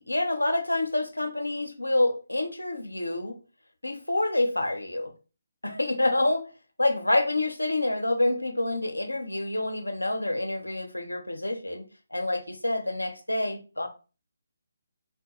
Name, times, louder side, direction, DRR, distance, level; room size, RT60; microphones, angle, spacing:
voice 1, 0.1-3.4 3.8-5.1 5.6-6.5 6.8-13.9, left 2 dB, 85° left, 0.9 m, -27 dB
4.7 x 2.2 x 2.9 m
figure-of-eight pair, 145°, 0 cm